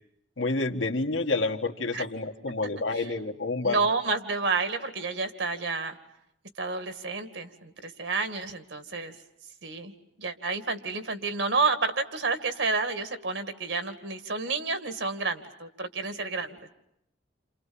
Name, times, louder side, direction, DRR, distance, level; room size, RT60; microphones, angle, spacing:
voice 1, 0.4-3.8, left 3 dB, 90° left, 4 dB, 1.8 m, -29 dB
voice 2, 3.6-6.0 6.6-9.2 9.6-9.9 10.2-16.7, right 4 dB, 75° right, 8 dB, 2.3 m, -30 dB
29.0 x 28.5 x 7.1 m, 0.77 s
head